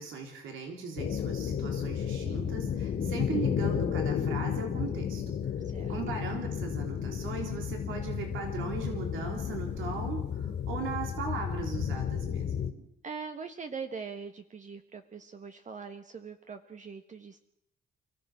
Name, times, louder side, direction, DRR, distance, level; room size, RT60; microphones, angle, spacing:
voice 1, 0.0-5.2 5.9-12.7, right 5 dB, 85° right, 2 dB, 3.8 m, -38 dB
sound 1, 1.0-12.7, left 8 dB, 60° left, 2.5 m, -32 dB
voice 2, 5.6-6.0 13.0-17.4, right 5 dB, 40° right, 6 dB, 1.4 m, -42 dB
28.5 x 15.5 x 6.2 m, 0.74 s
cardioid pair, 90°, 20 cm